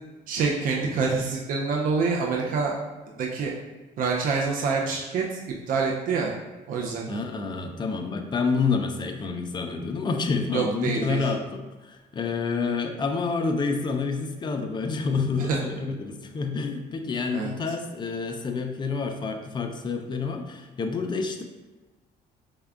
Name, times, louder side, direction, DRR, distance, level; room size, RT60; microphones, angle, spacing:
voice 1, 0.3-2.7 3.2-3.5 4.0-5.4 5.7-6.3 6.7-7.2 10.5-11.3 15.4-15.6 17.3-17.7, right 4 dB, 55° right, -1 dB, 0.5 m, -26 dB
voice 2, 7.1-21.4, left 4 dB, 25° left, 5 dB, 0.4 m, -28 dB
3.5 x 2.2 x 3.6 m, 1.2 s
cardioid pair, 110°, 17 cm